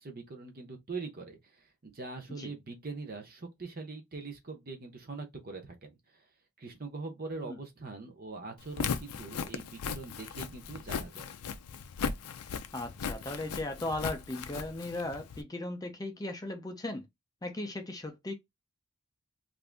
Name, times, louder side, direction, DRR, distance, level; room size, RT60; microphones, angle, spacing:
voice 1, 0.0-1.4 1.8-5.9 6.6-11.3, right 3 dB, 40° right, 0.7 m, -42 dB
Walk footsteps, 8.6-15.4, left 6 dB, 90° left, 0.4 m, -37 dB
voice 2, 12.7-17.1 17.4-18.3, left 2 dB, 15° left, 0.4 m, -37 dB
2.6 x 2.5 x 3.4 m
head